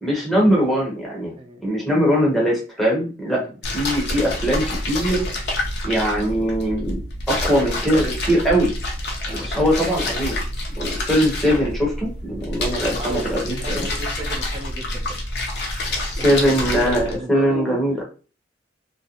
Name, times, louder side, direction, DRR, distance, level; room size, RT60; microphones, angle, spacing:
voice 1, 0.0-1.3 1.6-3.4 3.7-5.2 5.8-7.0 7.3-8.7 9.3-10.4 10.8-13.8 15.9-18.0, equal, ahead, -4 dB, 0.8 m, -21 dB
voice 2, 1.3-1.7 3.3-3.5 9.3-9.5 13.0-13.3 13.6-15.2 16.2-17.8, right 1 dB, 30° right, 3 dB, 0.5 m, -34 dB
sound 1, 3.6-17.2, left 1 dB, 60° left, 0.6 m, -27 dB
2.4 x 2.0 x 2.8 m, 0.35 s
head